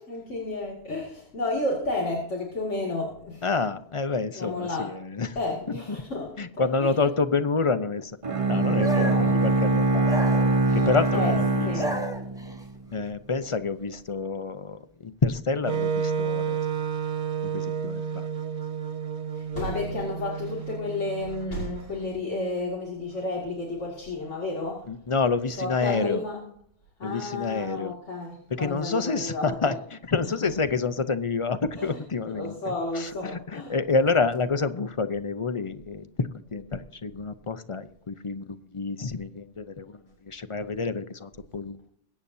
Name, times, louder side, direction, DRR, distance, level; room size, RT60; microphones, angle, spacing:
voice 1, 0.0-3.4 4.4-4.9 5.4-6.3 6.8-6.9 8.7-9.4 10.5-10.8 11.1-11.4 11.6-12.6 19.3-24.9 25.6-26.4 27.0-29.7 31.8-32.0 32.3-33.7, left 2 dB, 75° left, -2 dB, 2.7 m, -32 dB
voice 2, 3.4-5.4 5.9-6.0 6.4-8.1 8.5-10.1 10.7-12.0 12.9-16.6 17.5-18.3 24.9-26.2 27.0-27.9 28.5-41.9, left 4 dB, 35° left, 11 dB, 0.6 m, -28 dB
Bowed string instrument, 8.2-12.7, right 2 dB, 30° right, 1.1 m, -23 dB
sound 1, 8.8-9.3 10.0-11.0 11.6-12.6, right 2 dB, 5° right, 1.2 m, -33 dB
Wind instrument woodwind instrument, 15.6-21.7, right 7 dB, 65° right, 1.1 m, -31 dB
22.0 x 8.9 x 2.7 m, 0.68 s
omnidirectional pair, 1.3 m